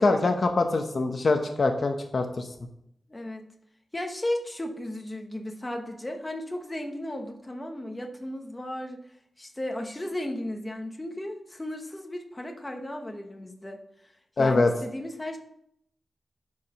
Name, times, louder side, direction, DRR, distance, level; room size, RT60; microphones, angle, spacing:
voice 1, 0.0-2.5 14.4-14.7, left 3 dB, 45° left, 5 dB, 0.8 m, -23 dB
voice 2, 3.1-3.5 3.9-9.0 9.4-13.8 14.4-15.4, left 1 dB, 15° left, 3 dB, 1.1 m, -35 dB
11.0 x 4.9 x 5.6 m, 0.74 s
wide cardioid pair, 155°, 0 cm